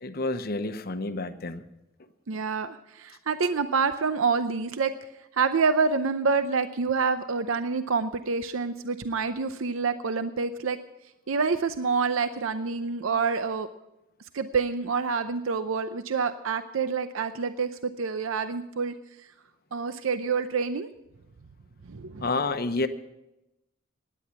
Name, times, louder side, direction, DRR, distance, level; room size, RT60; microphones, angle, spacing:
voice 1, 0.0-1.6 22.2-22.9, left 3 dB, 45° left, 10 dB, 0.9 m, -29 dB
voice 2, 2.3-4.9 5.3-10.8 11.3-13.7 14.3-18.9 19.7-20.9 21.9-22.3, right 5 dB, 75° right, 11 dB, 0.6 m, -27 dB
17.0 x 10.0 x 5.9 m, 0.91 s
head